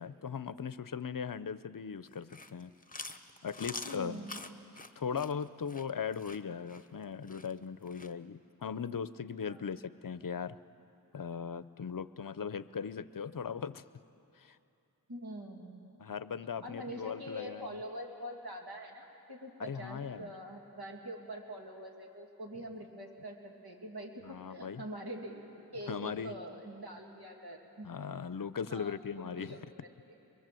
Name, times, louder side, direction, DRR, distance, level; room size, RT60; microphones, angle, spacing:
voice 1, 0.0-2.7 3.4-4.3 5.0-10.6 11.1-13.8 14.4-14.6 16.0-17.8 19.6-20.3 24.2-24.8 25.9-26.4 27.8-29.6, left 6 dB, 55° left, 15 dB, 0.6 m, -39 dB
Chewing mastication, 2.1-8.1, left 2 dB, 20° left, 1.0 m, -46 dB
voice 2, 3.8-4.4 9.5-9.6 15.1-15.8 16.6-27.9 28.7-29.6 30.1-30.2, equal, 70° right, 0 dB, 2.7 m, -44 dB
23.5 x 22.5 x 7.7 m, 2.8 s
wide cardioid pair, 45°, 39 cm